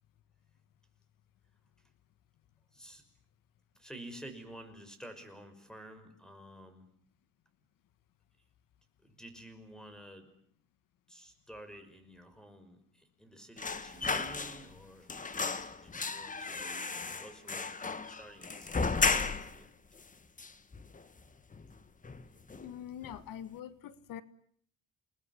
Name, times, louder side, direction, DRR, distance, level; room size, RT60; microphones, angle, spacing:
voice 1, 2.7-3.0 3.7-6.9 9.0-10.3 11.1-15.1 15.8-16.9 17.2-19.7, right 1 dB, ahead, 10 dB, 5.8 m, -51 dB
sound 1, 13.6-14.8 15.1-19.6 20.0-20.1 20.4-21.2 21.5-21.7 22.0-22.7 23.0-23.2, left 4 dB, 25° left, 1.5 m, -34 dB
voice 2, 22.6-24.2, left 10 dB, 85° left, 13 dB, 1.6 m, -44 dB
29.0 x 20.0 x 9.7 m, 0.63 s
cardioid pair, 120°, 32 cm